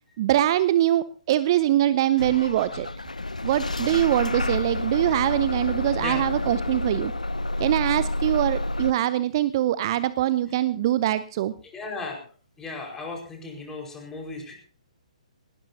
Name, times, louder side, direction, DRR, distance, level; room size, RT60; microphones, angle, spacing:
voice 1, 0.2-2.9 3.4-7.1 7.6-11.5, right 13 dB, 35° right, 16 dB, 0.6 m, -23 dB
Bus / Engine starting, 2.2-8.9, left 2 dB, 85° left, 0.6 m, -29 dB
voice 2, 11.7-12.2 12.6-14.5, left 3 dB, 10° left, 0 dB, 4.8 m, -35 dB
20.0 x 18.5 x 2.8 m, 0.42 s
figure-of-eight pair, 130°, 4 cm